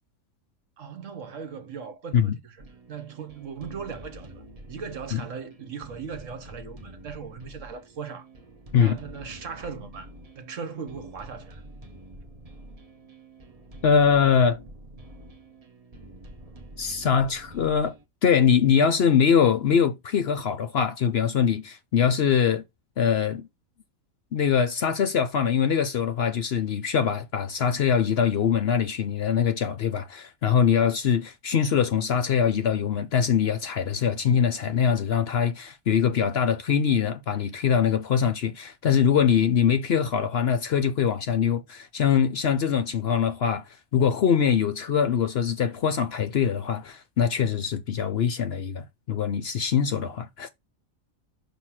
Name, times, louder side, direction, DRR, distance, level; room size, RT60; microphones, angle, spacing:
voice 1, 0.8-2.6 2.9-8.3 8.8-11.6, right 6 dB, 65° right, 1.4 m, -38 dB
sound 1, 2.6-18.0, right 1 dB, 30° right, 0.9 m, -46 dB
voice 2, 13.8-14.6 16.8-17.9 18.2-22.6 23.0-23.5 24.3-43.6 43.9-50.5, left 7 dB, 60° left, 0.7 m, -23 dB
6.4 x 2.8 x 5.6 m
omnidirectional pair, 1.4 m